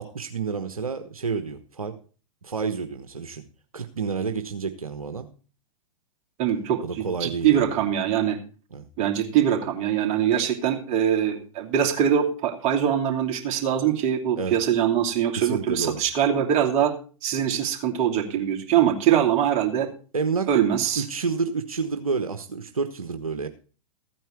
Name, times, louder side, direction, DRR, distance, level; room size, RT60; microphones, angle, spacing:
voice 1, 0.0-2.0 2.4-3.4 3.7-5.3 6.8-7.8 8.7-8.8 14.4-14.6 15.3-16.0 20.1-20.5 20.9-23.5, right 5 dB, 85° right, 8 dB, 1.1 m, -29 dB
voice 2, 6.4-8.4 9.0-16.9 17.2-19.9 20.5-21.0, right 9 dB, 40° right, 2 dB, 2.9 m, -23 dB
14.5 x 9.1 x 4.5 m, 0.38 s
figure-of-eight pair, 105°, 18 cm